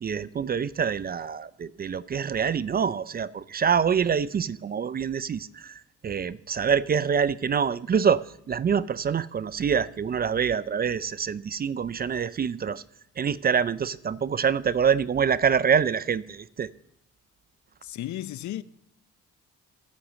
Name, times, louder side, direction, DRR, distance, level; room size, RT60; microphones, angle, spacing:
voice 1, 0.0-12.8 13.2-16.7, right 7 dB, 30° right, 0.4 m, -26 dB
voice 2, 17.8-18.6, left 13 dB, 70° left, 0.7 m, -34 dB
14.5 x 6.3 x 7.4 m
cardioid pair, 90°, 30 cm